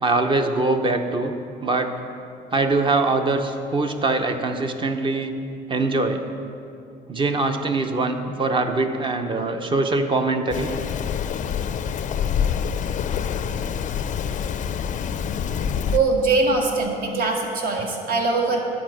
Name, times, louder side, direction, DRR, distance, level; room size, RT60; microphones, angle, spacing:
voice 1, 0.0-1.9 2.5-5.3 5.7-6.2 7.1-10.7, right 3 dB, 30° right, 6 dB, 0.7 m, -23 dB
Rain, 10.5-16.0, left 7 dB, 45° left, 0.5 m, -26 dB
voice 2, 15.9-18.6, right 3 dB, 60° right, 1 dB, 1.7 m, -22 dB
10.5 x 4.8 x 7.7 m, 2.6 s
cardioid pair, 110°, 17 cm